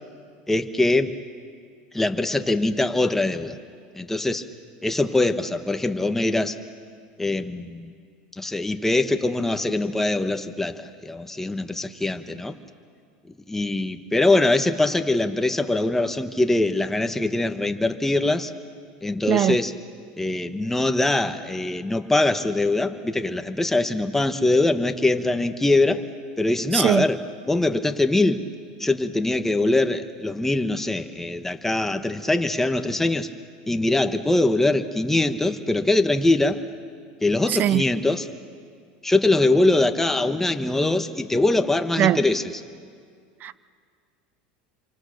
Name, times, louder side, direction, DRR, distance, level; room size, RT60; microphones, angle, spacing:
voice 1, 0.5-1.2 1.9-3.6 4.0-4.4 4.8-6.6 7.2-7.9 8.3-12.6 13.3-18.5 19.0-19.7 20.2-26.0 26.4-27.2 27.5-28.4 28.8-33.3 33.7-36.6 37.2-38.3 39.0-42.6, left 2 dB, 5° left, 1.2 m, -22 dB
voice 2, 26.7-27.0 37.5-37.8 42.0-42.2 43.4-43.6, right 12 dB, 40° right, 0.7 m, -20 dB
27.5 x 24.5 x 6.7 m
supercardioid pair, 115°, 5 cm